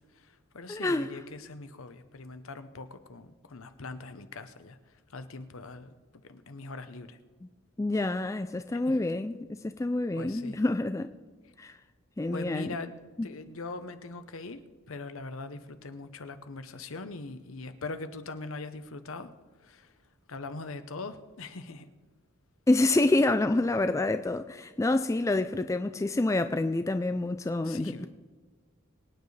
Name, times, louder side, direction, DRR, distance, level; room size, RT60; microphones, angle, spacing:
voice 1, 0.2-4.8 5.1-5.9 6.2-7.2 10.2-10.6 12.3-12.9 13.2-19.3 19.6-19.9 20.3-21.9 27.6-28.1, left 3 dB, 70° left, 10 dB, 0.8 m, -41 dB
voice 2, 0.7-1.1 7.8-11.1 11.6-11.8 12.2-12.7 13.2-13.3 22.7-28.1, left 2 dB, 15° left, 9 dB, 0.3 m, -27 dB
23.0 x 9.4 x 3.3 m, 1.4 s
head